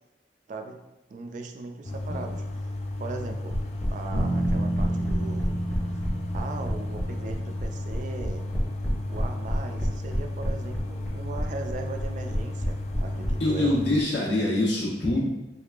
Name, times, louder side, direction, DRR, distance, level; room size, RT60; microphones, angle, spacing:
voice 1, 0.5-0.8 1.1-3.6 3.9-5.6 5.9-6.0 6.3-8.4 9.1-13.8, right 3 dB, 45° right, 5 dB, 0.3 m, -38 dB
sound 1, 1.8-14.0, left 1 dB, 35° left, 0.3 m, -34 dB
sound 2, 3.5-13.3, equal, 15° left, 0.7 m, -29 dB
sound 3, 4.1-8.2, right 1 dB, 90° right, 0.9 m, -31 dB
voice 2, 13.4-15.3, left 1 dB, 75° left, -5 dB, 1.1 m, -24 dB
3.4 x 3.2 x 2.4 m, 0.96 s
head